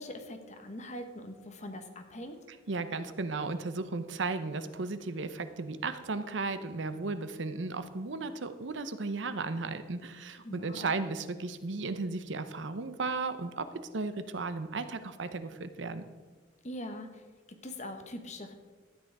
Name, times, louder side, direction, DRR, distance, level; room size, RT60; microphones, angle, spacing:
voice 1, 0.0-2.4 10.4-10.9 16.6-17.2 17.6-18.5, left 1 dB, 40° left, 6 dB, 1.2 m, -42 dB
voice 2, 2.7-16.0, right 3 dB, 75° right, 11 dB, 0.8 m, -35 dB
13.0 x 8.9 x 4.7 m, 1.3 s
head